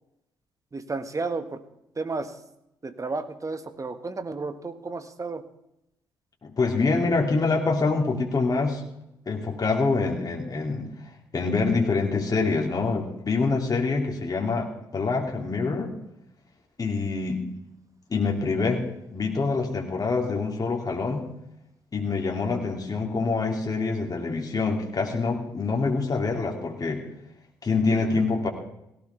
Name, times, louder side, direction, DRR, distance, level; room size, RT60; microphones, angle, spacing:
voice 1, 0.7-1.6 2.0-2.3 2.8-5.4, right 3 dB, 30° right, 9 dB, 1.8 m, -32 dB
voice 2, 6.4-8.9 9.3-10.9 11.3-15.9 16.8-17.5 18.1-18.8 19.1-21.3 21.9-27.0 27.6-28.5, left 4 dB, 40° left, 0 dB, 2.9 m, -25 dB
17.5 x 15.5 x 3.5 m, 0.82 s
hypercardioid pair, 45°, 10 cm